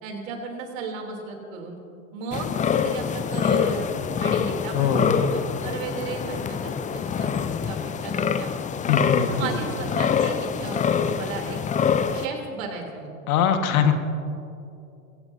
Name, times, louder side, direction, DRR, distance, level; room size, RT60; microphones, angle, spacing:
voice 1, 0.0-1.8 2.1-3.9 4.2-8.5 9.3-11.6 12.1-13.1, right 5 dB, 60° right, 2 dB, 3.4 m, -35 dB
sound 1, 2.3-12.3, left 7 dB, 15° left, 0.6 m, -25 dB
voice 2, 4.7-5.1 8.9-9.3 13.3-13.9, left 8 dB, 65° left, 6 dB, 1.8 m, -21 dB
23.5 x 17.0 x 2.8 m, 2.6 s
hypercardioid pair, 90°, 44 cm